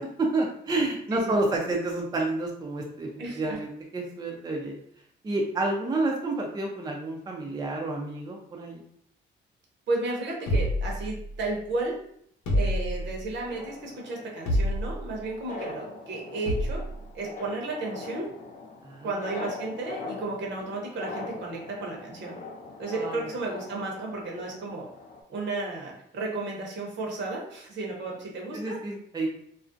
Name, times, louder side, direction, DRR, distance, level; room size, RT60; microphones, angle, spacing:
voice 1, 0.0-4.7 5.2-8.8 18.8-19.3 22.9-23.3 28.5-29.3, right 2 dB, 20° right, 0 dB, 0.4 m, -29 dB
voice 2, 3.2-3.6 9.9-11.9 12.5-16.8 17.1-18.3 19.0-22.4 22.8-24.9 25.3-28.8, right 2 dB, 65° right, -1 dB, 0.8 m, -33 dB
sound 1, 10.5-11.6 12.5-13.3 14.5-15.1 16.5-16.9, equal, 75° left, 0.8 m, -27 dB
sound 2, 13.4-25.2, left 3 dB, 40° left, 0.4 m, -42 dB
2.4 x 2.0 x 2.5 m, 0.68 s
cardioid pair, 90°, 20 cm